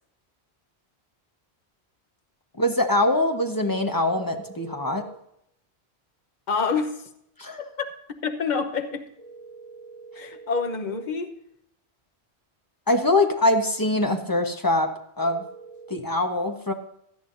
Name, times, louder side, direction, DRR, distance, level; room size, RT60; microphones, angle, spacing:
voice 1, 2.6-5.1 7.4-7.7 12.9-14.9 15.2-15.4 15.9-16.7, left 1 dB, 20° left, 4 dB, 1.2 m, -23 dB
sound 1, 3.2-5.2 9.2-11.2 15.2-16.0, right 4 dB, 30° right, 2.6 m, -45 dB
voice 2, 6.5-6.9 7.8-7.9 8.2-9.1 10.1-11.3, left 5 dB, 45° left, 4 dB, 1.2 m, -27 dB
18.0 x 12.0 x 2.7 m, 0.75 s
omnidirectional pair, 1.1 m